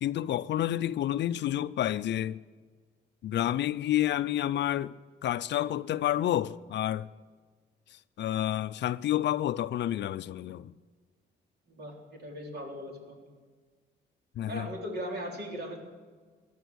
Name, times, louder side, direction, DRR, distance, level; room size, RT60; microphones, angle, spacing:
voice 1, 0.0-2.4 3.2-4.9 5.2-7.1 8.2-10.7 14.4-14.7, left 12 dB, 65° left, 0.5 m, -29 dB
voice 2, 11.7-13.3 14.5-15.8, equal, 55° right, 3.8 m, -38 dB
16.5 x 11.5 x 6.3 m
cardioid pair, 90°, 20 cm